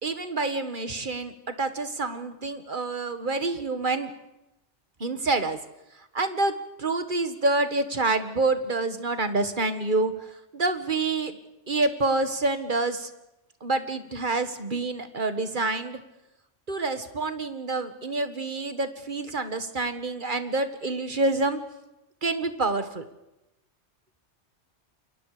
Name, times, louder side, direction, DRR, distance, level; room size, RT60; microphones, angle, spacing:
voice 1, 0.0-4.1 5.0-5.6 6.1-6.5 6.8-10.1 10.5-11.4 11.7-13.1 13.6-16.0 16.7-21.6 22.2-23.0, right 3 dB, 45° right, 9 dB, 1.9 m, -27 dB
28.5 x 22.5 x 5.1 m, 0.92 s
omnidirectional pair, 1.2 m